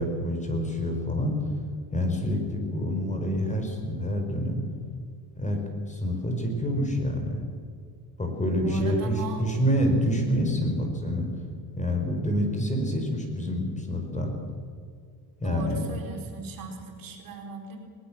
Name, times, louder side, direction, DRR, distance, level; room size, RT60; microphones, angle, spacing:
voice 1, 0.0-1.3 1.9-4.6 5.4-7.4 8.2-11.3 11.8-14.3 15.4-15.8, equal, 20° left, 4 dB, 5.0 m, -27 dB
voice 2, 8.4-9.6 15.4-17.8, right 3 dB, 60° right, 2 dB, 4.4 m, -38 dB
20.0 x 19.0 x 7.5 m, 2.2 s
cardioid pair, 105°, 38 cm